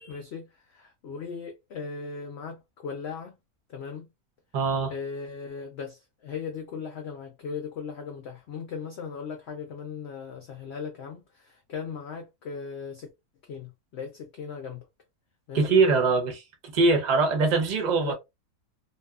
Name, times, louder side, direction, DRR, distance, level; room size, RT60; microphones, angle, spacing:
voice 1, 0.1-3.4 3.7-4.1 4.9-13.1 13.5-14.8 15.5-15.7 18.0-18.1, left 5 dB, 65° left, 0.7 m, -38 dB
voice 2, 4.5-4.9 15.5-18.1, right 4 dB, 50° right, 0.5 m, -23 dB
2.7 x 2.3 x 2.3 m
omnidirectional pair, 1.6 m